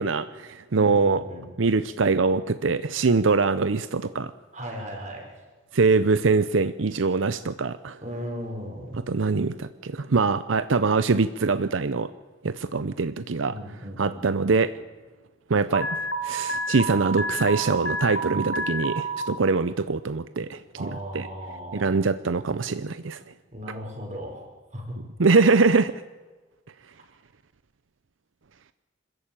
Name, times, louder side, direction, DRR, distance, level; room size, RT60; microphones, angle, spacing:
voice 1, 0.0-1.2 1.6-4.3 5.7-8.0 9.1-12.1 12.4-13.5 14.0-14.7 15.5-21.3 21.7-23.2 25.2-25.9, right 4 dB, 80° right, 13 dB, 0.7 m, -23 dB
voice 2, 0.7-1.4 4.5-5.3 8.0-9.0 13.5-14.5 20.7-22.0 23.5-25.0, equal, 40° right, 2 dB, 5.2 m, -37 dB
Alarm, 15.7-19.2, right 1 dB, 85° left, 2.1 m, -29 dB
25.5 x 14.5 x 8.9 m, 1.4 s
head